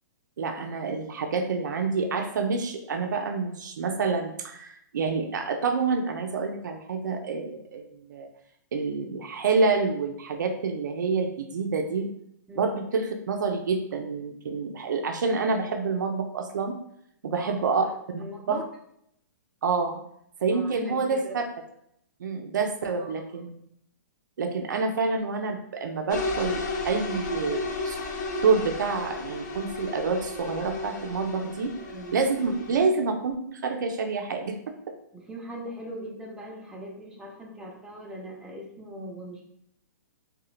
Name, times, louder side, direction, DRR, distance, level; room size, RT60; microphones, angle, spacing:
voice 1, 0.4-8.3 8.7-12.1 12.6-16.8 17.2-17.9 18.1-18.6 19.6-20.0 20.4-21.4 22.2-23.5 24.4-28.0 28.4-31.7 32.1-34.9, right 4 dB, 85° right, 5 dB, 0.4 m, -27 dB
voice 2, 18.2-18.6 20.5-21.3 23.0-23.1 31.7-32.2 35.1-39.4, right 1 dB, 5° right, -2 dB, 0.4 m, -40 dB
sound 1, 26.1-32.8, left 3 dB, 75° left, 0.5 m, -33 dB
2.9 x 2.1 x 2.4 m, 0.74 s
hypercardioid pair, 145°, 10 cm